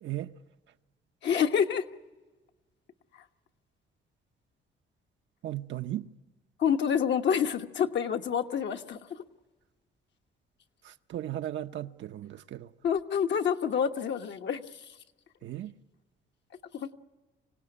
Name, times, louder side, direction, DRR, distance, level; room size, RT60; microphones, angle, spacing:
voice 1, 0.0-0.3 5.4-6.1 10.8-12.7 15.4-15.8, right 13 dB, 70° right, 0.7 m, -36 dB
voice 2, 1.2-1.9 6.6-9.2 12.8-14.9 16.7-16.9, left 7 dB, 65° left, 1.3 m, -28 dB
25.5 x 17.5 x 9.8 m
cardioid pair, 90°, 20 cm